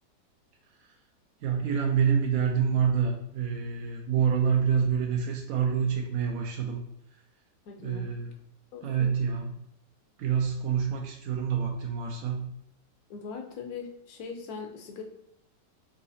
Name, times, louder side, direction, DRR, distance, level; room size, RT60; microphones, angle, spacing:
voice 1, 1.4-6.8 7.8-8.3 8.8-9.5 10.2-12.5, right 7 dB, 70° right, 1 dB, 0.9 m, -27 dB
voice 2, 7.7-8.1 8.7-9.1 13.1-15.0, left 5 dB, 65° left, 3 dB, 1.1 m, -40 dB
4.1 x 3.8 x 2.7 m, 0.79 s
omnidirectional pair, 1.9 m